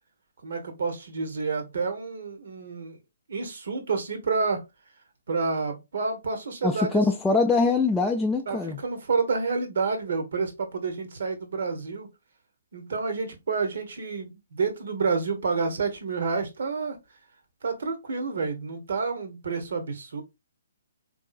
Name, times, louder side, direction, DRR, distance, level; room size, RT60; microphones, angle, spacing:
voice 1, 0.4-3.0 3.3-4.6 5.3-7.0 8.5-12.1 12.7-17.0 17.6-20.2, right 4 dB, 65° right, 1.0 m, -29 dB
voice 2, 6.6-8.8, left 3 dB, 5° left, 0.3 m, -23 dB
3.6 x 2.7 x 2.4 m
figure-of-eight pair, 135°, 0 cm